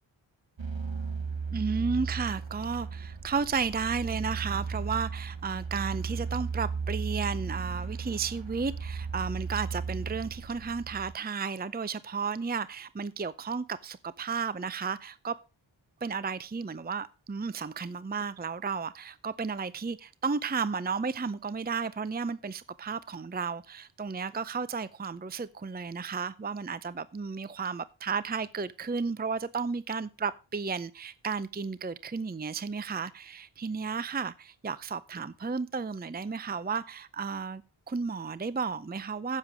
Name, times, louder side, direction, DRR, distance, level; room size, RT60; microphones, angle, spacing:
sound 1, 0.6-11.1, right 5 dB, 70° right, 1.4 m, -35 dB
voice 1, 1.5-15.3 16.0-37.6 37.9-39.4, right 5 dB, 20° right, 0.5 m, -33 dB
10.0 x 7.6 x 6.1 m
wide cardioid pair, 45°, 47 cm